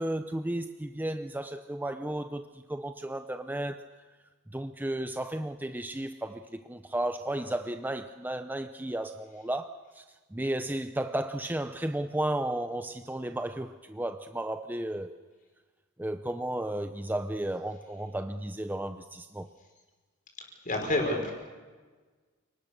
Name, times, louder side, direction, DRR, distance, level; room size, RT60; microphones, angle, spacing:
voice 1, 0.0-3.9 4.5-10.0 10.3-15.2 16.0-19.5, right 1 dB, 10° right, 0.6 m, -33 dB
voice 2, 20.7-21.3, left 1 dB, 40° left, 5.4 m, -28 dB
29.5 x 19.5 x 6.7 m
head